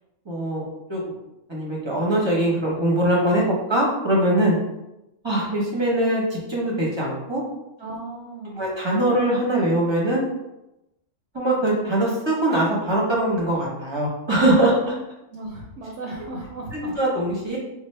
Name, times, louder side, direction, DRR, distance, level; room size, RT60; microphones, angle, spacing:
voice 1, 0.3-1.1 1.5-3.4 3.7-4.6 5.2-7.4 8.6-10.2 11.3-14.7 16.7-17.6, right 1 dB, 25° right, -4 dB, 0.7 m, -22 dB
voice 2, 7.8-8.6 14.6-15.0 15.3-17.0, right 2 dB, 70° right, -1 dB, 0.9 m, -36 dB
4.6 x 2.0 x 3.1 m, 0.93 s
omnidirectional pair, 1.3 m